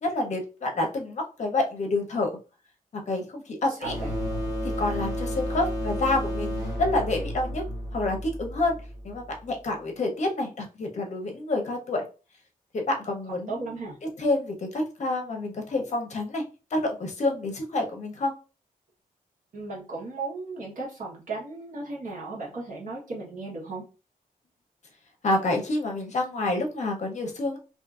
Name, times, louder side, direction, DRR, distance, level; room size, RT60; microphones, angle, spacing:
voice 1, 0.0-2.3 3.1-3.9 4.6-7.6 7.9-8.8 9.0-12.0 12.7-13.7 14.2-16.4 16.7-18.3 25.2-27.6, left 2 dB, 50° left, 3 dB, 0.7 m, -28 dB
voice 2, 3.7-4.1 13.5-14.0 19.5-23.8, right 3 dB, 60° right, -3 dB, 1.1 m, -35 dB
sound 1, 3.8-9.3, equal, 25° right, 1.4 m, -32 dB
2.6 x 2.5 x 2.3 m, 0.33 s
wide cardioid pair, 145°, 15 cm